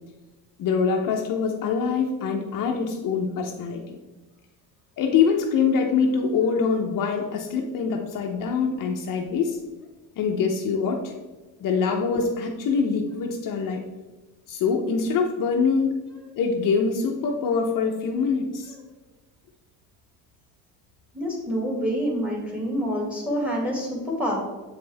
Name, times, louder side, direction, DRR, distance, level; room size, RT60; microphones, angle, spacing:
voice 1, 0.6-4.0 5.0-9.6 10.2-11.1 11.6-13.8 14.5-15.9 16.4-18.7, left 5 dB, 50° left, 1 dB, 0.9 m, -24 dB
voice 2, 21.1-24.4, equal, 5° right, -2 dB, 2.1 m, -27 dB
7.8 x 5.3 x 3.4 m, 1.2 s
cardioid pair, 140°, 41 cm